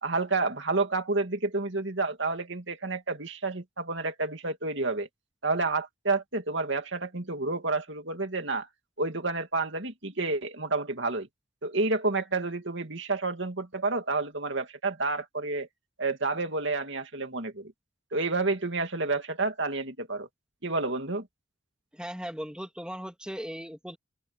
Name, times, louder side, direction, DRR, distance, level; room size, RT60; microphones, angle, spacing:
voice 1, 0.0-5.1 5.4-8.7 9.0-11.3 11.6-15.7 16.0-17.7 18.1-20.3 20.6-21.3, right 3 dB, 60° right, 2.6 m, -29 dB
voice 2, 21.9-24.0, equal, 5° right, 3.1 m, -38 dB
open air
head